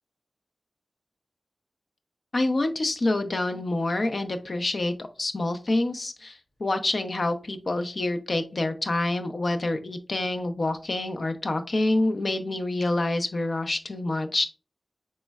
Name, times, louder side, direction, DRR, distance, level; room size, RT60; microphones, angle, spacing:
voice 1, 2.3-14.5, left 2 dB, 55° left, 7 dB, 0.5 m, -27 dB
4.2 x 3.1 x 2.3 m, 0.33 s
wide cardioid pair, 75°, 0 cm